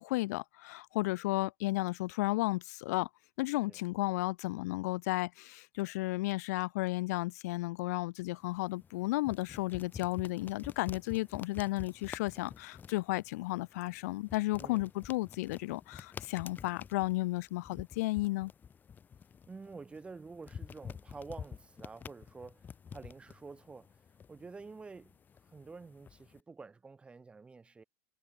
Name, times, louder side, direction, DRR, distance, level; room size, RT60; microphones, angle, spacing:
voice 1, 0.0-3.1 3.4-18.5, left 20 dB, 60° left, 1.7 m, -33 dB
sound 1, 8.2-26.4, left 7 dB, 20° left, 3.7 m, -50 dB
voice 2, 14.6-14.9 19.5-25.2 25.5-27.8, right 4 dB, 10° right, 2.3 m, -49 dB
supercardioid pair, 140°, 10 cm